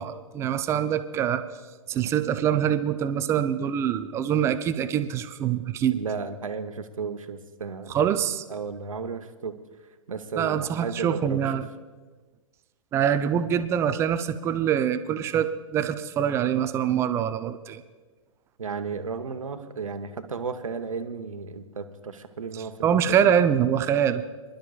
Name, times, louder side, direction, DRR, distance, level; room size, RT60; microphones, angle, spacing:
voice 1, 0.0-1.4 1.9-6.0 7.9-8.4 10.4-11.7 12.9-17.8 22.8-24.2, right 9 dB, 15° right, 11 dB, 0.4 m, -24 dB
voice 2, 5.9-8.0 8.5-9.6 10.1-11.4 18.6-23.2, right 5 dB, 70° right, 8 dB, 1.0 m, -34 dB
24.5 x 11.5 x 2.4 m, 1.3 s
figure-of-eight pair, 115°, 18 cm